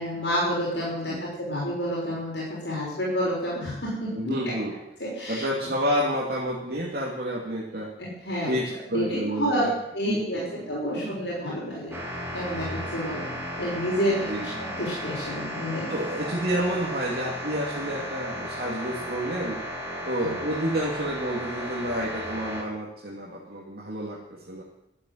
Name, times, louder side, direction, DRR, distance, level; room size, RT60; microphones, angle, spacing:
voice 1, 0.0-4.5 5.0-5.5 8.0-8.5 8.9-9.6 9.9-12.0 12.3-13.3 13.6-15.9 20.2-20.3, equal, 75° left, -6 dB, 6.1 m, -29 dB
voice 2, 4.1-4.7 5.3-7.9 8.5-9.7 10.1-11.2 14.3-14.5 15.9-19.6 20.0-24.6, equal, 60° right, -4 dB, 2.8 m, -29 dB
sound 1, 11.9-22.6, equal, 15° right, 3.6 m, -35 dB
13.5 x 8.5 x 9.4 m, 0.83 s
head